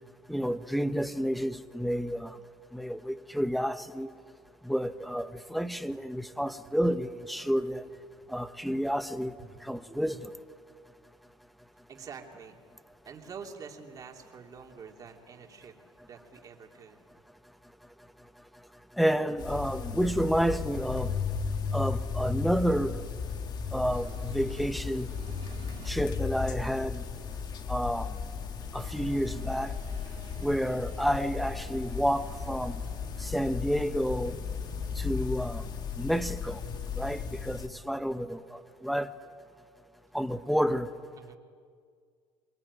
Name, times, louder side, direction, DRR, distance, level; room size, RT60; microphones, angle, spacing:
voice 1, 0.3-2.4 2.7-4.1 4.6-7.8 8.3-9.3 9.6-10.3 19.0-21.2 21.7-23.0 23.7-25.1 25.9-27.0 27.7-28.1 28.7-29.7 30.4-32.8 33.2-34.3 35.0-35.6 36.0-36.6 37.0-39.1 40.1-40.9, equal, ahead, 1.0 m, -30 dB
voice 2, 9.4-9.8 11.9-12.6 13.0-15.7 16.1-17.0 41.2-41.4, right 6 dB, 35° right, 3.1 m, -46 dB
sound 1, 19.4-37.7, left 6 dB, 40° left, 1.8 m, -35 dB
sound 2, 23.9-26.4, right 11 dB, 55° right, 1.4 m, -53 dB
sound 3, 28.7-38.5, right 9 dB, 80° right, 3.5 m, -54 dB
26.5 x 22.0 x 9.8 m
cardioid pair, 125°, 11 cm